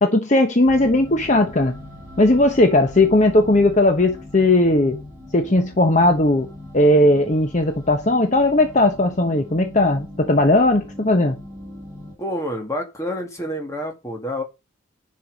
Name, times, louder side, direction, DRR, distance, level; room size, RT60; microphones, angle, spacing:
voice 1, 0.0-1.8 2.2-5.0 5.3-6.5 6.7-11.4, left 1 dB, 35° left, 1.0 m, -17 dB
sound 1, 0.7-12.1, left 1 dB, 15° right, 5.0 m, -40 dB
voice 2, 12.2-14.4, equal, 15° left, 2.0 m, -28 dB
10.0 x 5.6 x 5.3 m
head